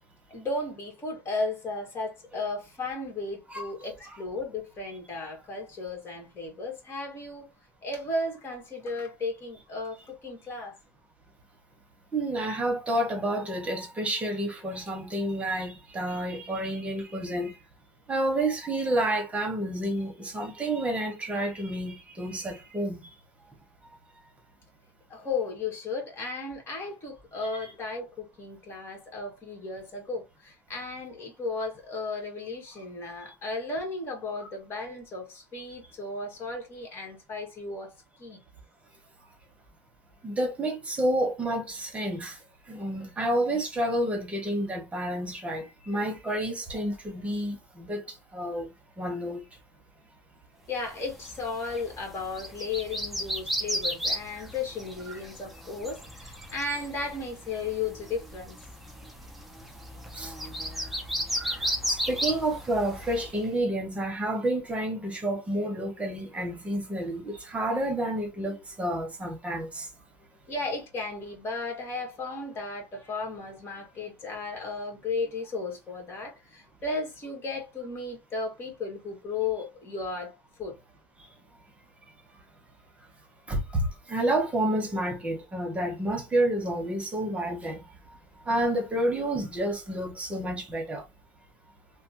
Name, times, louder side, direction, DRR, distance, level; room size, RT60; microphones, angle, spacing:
voice 1, 0.3-7.5 7.8-10.8 25.1-38.4 50.7-58.6 70.5-80.8, left 3 dB, 35° left, 1.8 m, -35 dB
voice 2, 12.1-17.6 18.1-23.1 34.4-34.5 40.2-42.4 42.7-48.1 48.3-48.7 49.0-49.4 54.4-54.5 55.1-55.2 60.1-60.3 61.4-69.9 83.5-87.8 88.5-91.0, right 1 dB, 20° right, 1.1 m, -29 dB
sound 1, 51.0-63.4, equal, ahead, 0.7 m, -35 dB
3.3 x 2.2 x 2.9 m
cardioid pair, 125°, 7 cm